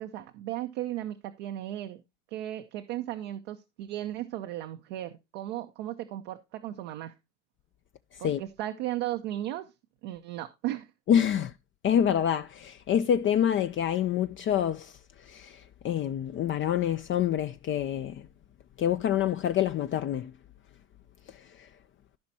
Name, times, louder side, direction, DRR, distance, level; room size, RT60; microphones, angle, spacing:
voice 1, 0.0-2.0 2.3-7.1 8.2-9.7 10.0-10.9, right 13 dB, 70° right, 0.9 m, -36 dB
voice 2, 11.1-11.5 11.8-14.9 15.3-15.6 15.8-18.2 18.8-20.3, left 9 dB, 35° left, 0.5 m, -26 dB
15.0 x 5.2 x 2.8 m
hypercardioid pair, 85°, 35 cm